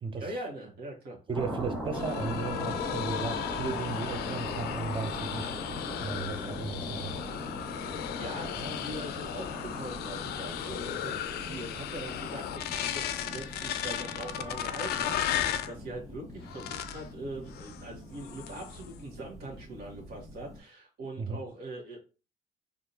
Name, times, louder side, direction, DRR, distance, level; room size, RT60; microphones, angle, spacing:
voice 1, 0.1-1.2 8.2-22.0, right 1 dB, 70° right, 1.4 m, -42 dB
sound 1, 1.3-20.6, equal, 5° right, 1.4 m, -40 dB
voice 2, 1.3-5.5 6.0-7.1 21.2-21.4, right 4 dB, 30° right, 0.6 m, -35 dB
sound 2, 1.9-15.7 16.5-17.1 17.5-17.8 18.2-18.9, left 11 dB, 70° left, 0.4 m, -35 dB
3.6 x 2.5 x 2.8 m
cardioid pair, 110°, 17 cm